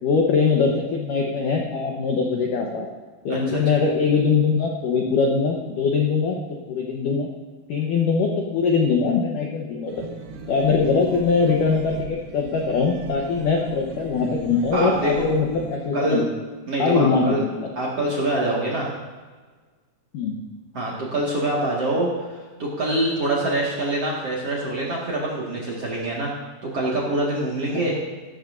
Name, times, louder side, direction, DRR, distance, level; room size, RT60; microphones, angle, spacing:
voice 1, 0.0-2.9 3.2-6.4 6.7-7.3 7.7-10.0 10.5-16.3 16.8-17.7 20.1-20.4, left 5 dB, 85° left, 0 dB, 1.8 m, -22 dB
voice 2, 3.3-3.6 14.7-15.2 15.9-16.2 16.7-17.4 17.8-18.9 20.7-22.3 22.6-26.3 26.6-28.0, right 1 dB, 50° right, -5 dB, 1.9 m, -25 dB
sound 1, 9.9-15.8, right 5 dB, 70° right, 2.8 m, -38 dB
16.0 x 13.0 x 2.7 m, 1.4 s
omnidirectional pair, 5.5 m